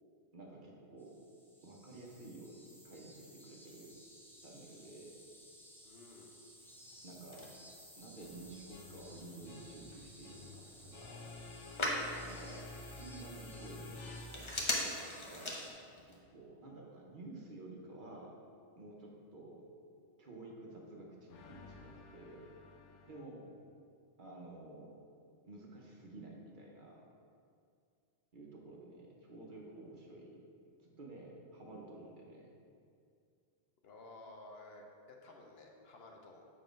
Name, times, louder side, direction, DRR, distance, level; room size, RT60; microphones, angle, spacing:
voice 1, 0.3-1.2 1.6-4.0 4.4-5.2 7.0-7.5 8.0-11.3 12.3-15.7 16.1-18.4 18.7-19.6 20.2-22.5 23.1-23.5 24.2-24.9 25.4-27.0 28.3-30.4 30.8-32.5, right 2 dB, 50° right, -1 dB, 0.9 m, -52 dB
sound 1, 1.0-15.7, equal, 5° left, 0.5 m, -57 dB
voice 2, 5.8-6.3 33.8-36.4, left 2 dB, 65° left, 1 dB, 0.9 m, -54 dB
Telephone, 6.6-16.2, left 1 dB, 30° left, 0.8 m, -43 dB
sound 2, 8.2-14.8 21.3-23.2, left 2 dB, 85° left, 1.0 m, -52 dB
7.1 x 3.8 x 5.1 m, 2.3 s
omnidirectional pair, 1.2 m